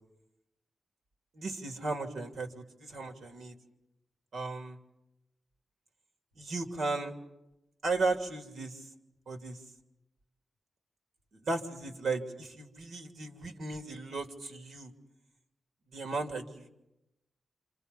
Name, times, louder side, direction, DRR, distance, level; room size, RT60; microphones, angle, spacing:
voice 1, 1.3-3.5 4.3-4.8 6.4-7.1 7.8-8.9 9.3-9.6 11.4-14.9 15.9-16.7, right 3 dB, 70° right, 3 dB, 3.2 m, -35 dB
28.5 x 28.0 x 5.5 m, 0.91 s
wide cardioid pair, 165°, 0 cm